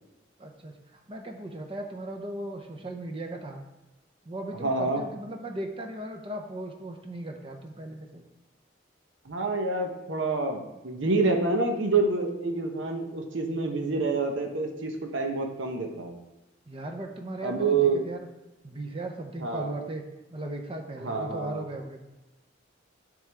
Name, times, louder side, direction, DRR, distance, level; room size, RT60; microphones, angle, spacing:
voice 1, 0.4-0.7 1.1-3.6 4.2-8.2 16.7-18.3 18.6-20.0 20.3-22.0, right 1 dB, 30° right, 3 dB, 0.6 m, -37 dB
voice 2, 4.6-5.0 9.2-16.1 17.4-18.0 19.4-19.7 21.0-21.7, right 3 dB, 80° right, 3 dB, 0.9 m, -27 dB
9.2 x 3.7 x 3.4 m, 1.0 s
head